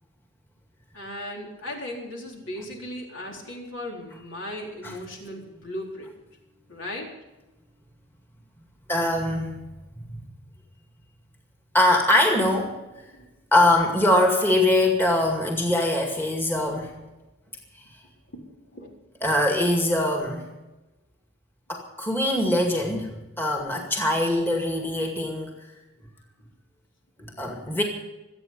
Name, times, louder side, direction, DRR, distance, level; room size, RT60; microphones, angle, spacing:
voice 1, 0.9-6.1 6.7-7.1 13.1-13.3 18.3-18.9, left 1 dB, 65° left, 0 dB, 3.9 m, -37 dB
voice 2, 8.9-9.6 10.0-10.2 11.7-12.8 13.5-16.9 19.2-20.5 21.7-23.1 23.4-25.5 27.2-27.8, left 1 dB, 10° left, 1 dB, 2.1 m, -22 dB
25.5 x 9.0 x 5.5 m, 1.0 s
head